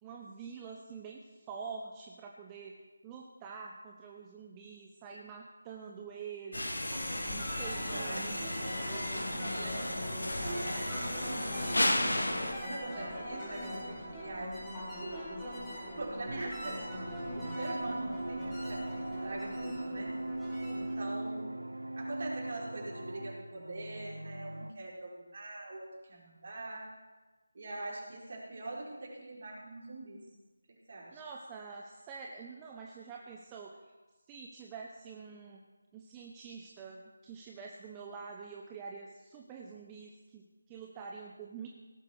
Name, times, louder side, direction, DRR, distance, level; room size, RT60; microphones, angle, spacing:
voice 1, 0.0-2.7 3.0-6.8 7.2-8.4 31.1-33.9 34.3-35.6 35.9-41.7, right 5 dB, 15° right, 0 dB, 0.9 m, -46 dB
sound 1, 6.5-12.5, left 1 dB, 75° left, 2.3 m, -34 dB
sound 2, 6.9-20.9, equal, ahead, 4.4 m, -41 dB
voice 2, 7.9-8.9 9.1-11.6 12.1-15.6 15.9-20.1 20.7-21.7 22.0-26.9 27.5-30.3 30.7-31.2, right 2 dB, 50° right, -4 dB, 4.9 m, -43 dB
sound 3, 16.3-24.7, right 1 dB, 85° right, 0.7 m, -40 dB
17.5 x 8.3 x 6.5 m, 1.2 s
figure-of-eight pair, 160°, 0 cm